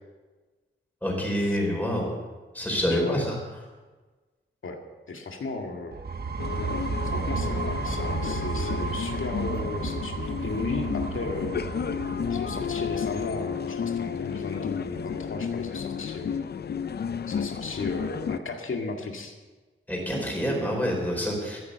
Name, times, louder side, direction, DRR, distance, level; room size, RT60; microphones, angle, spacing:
voice 1, 1.0-2.1 2.5-3.3 19.9-21.6, equal, 10° left, -1 dB, 4.5 m, -27 dB
voice 2, 2.9-3.3 4.6-4.8 5.1-6.0 7.1-11.6 12.3-16.4 17.3-19.4, left 3 dB, 70° left, 2 dB, 2.1 m, -35 dB
sound 1, 5.9-13.5, right 5 dB, 50° right, 1.1 m, -33 dB
sound 2, 6.4-18.4, left 7 dB, 50° left, 0.5 m, -32 dB
14.5 x 10.5 x 6.8 m, 1.3 s
wide cardioid pair, 155°, 21 cm